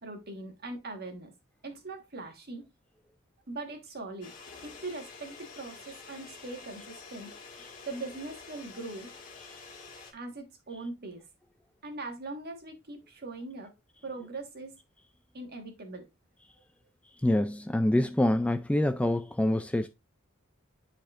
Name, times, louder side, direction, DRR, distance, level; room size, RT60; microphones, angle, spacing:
voice 1, 0.0-1.3 1.6-2.7 3.5-4.3 4.6-7.4 7.8-9.1 10.1-11.2 11.8-13.7 14.0-14.7 15.3-16.1, right 2 dB, 50° right, 1.5 m, -41 dB
sound 1, 4.2-10.1, left 4 dB, 40° left, 2.1 m, -48 dB
voice 2, 17.2-19.9, left 1 dB, 5° left, 0.3 m, -26 dB
10.5 x 4.2 x 2.5 m
head